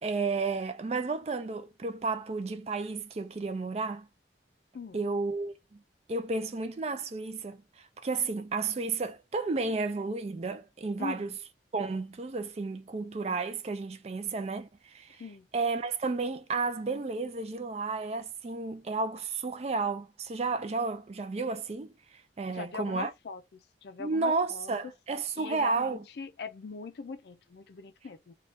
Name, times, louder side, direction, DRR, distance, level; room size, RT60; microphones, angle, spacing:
voice 1, 0.0-4.1 4.9-5.8 6.1-11.4 11.7-15.2 15.5-23.1 24.0-26.0, right 3 dB, 35° right, 0.4 m, -32 dB
voice 2, 22.5-24.7 25.4-28.3, left 4 dB, 65° left, 0.4 m, -41 dB
2.6 x 2.3 x 3.3 m
head